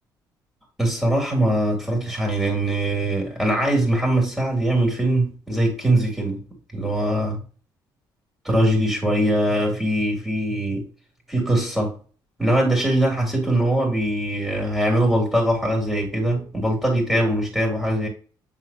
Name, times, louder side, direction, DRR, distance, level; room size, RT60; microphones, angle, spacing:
voice 1, 0.8-6.4 6.7-7.4 8.4-10.9 11.3-11.9 12.4-18.1, right 1 dB, ahead, 3.1 m, -22 dB
8.5 x 3.8 x 2.9 m
cardioid pair, 115°, 8 cm